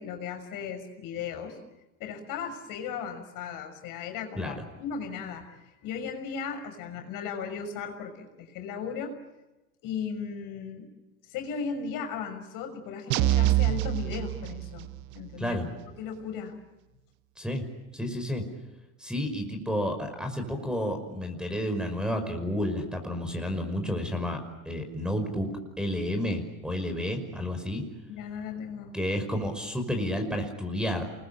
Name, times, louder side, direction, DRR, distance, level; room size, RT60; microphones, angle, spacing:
voice 1, 0.0-1.6 2.0-9.1 9.8-10.9 11.3-14.9 15.1-15.6 16.0-16.5 28.1-28.9, left 6 dB, 50° left, 5 dB, 6.3 m, -36 dB
sound 1, 13.1-15.0, right 15 dB, 45° right, 0.9 m, -25 dB
voice 2, 17.9-18.4 19.0-27.8 28.9-31.0, equal, ahead, 6 dB, 5.6 m, -31 dB
28.5 x 21.5 x 8.7 m, 1.0 s
hypercardioid pair, 105°, 44 cm